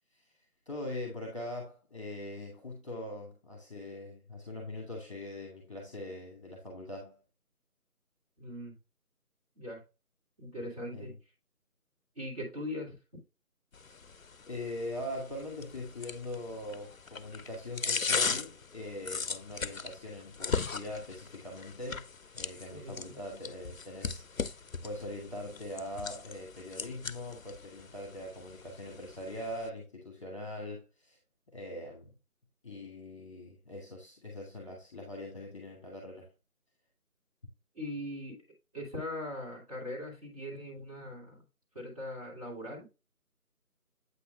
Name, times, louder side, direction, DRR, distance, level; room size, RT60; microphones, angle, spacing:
voice 1, 0.7-7.2 10.9-11.2 13.9-14.0 14.5-24.5 24.8-31.2 31.5-32.1 32.6-36.3, left 1 dB, 20° left, 1.7 m, -42 dB
voice 2, 8.4-8.7 9.6-9.8 10.4-11.2 12.2-13.2 22.7-23.2 37.7-38.4 38.7-41.4 41.7-42.9, left 1 dB, 25° right, 2.8 m, -40 dB
sound 1, 13.7-29.7, left 5 dB, 65° left, 0.6 m, -39 dB
8.4 x 5.5 x 2.2 m
figure-of-eight pair, 165°, 45 cm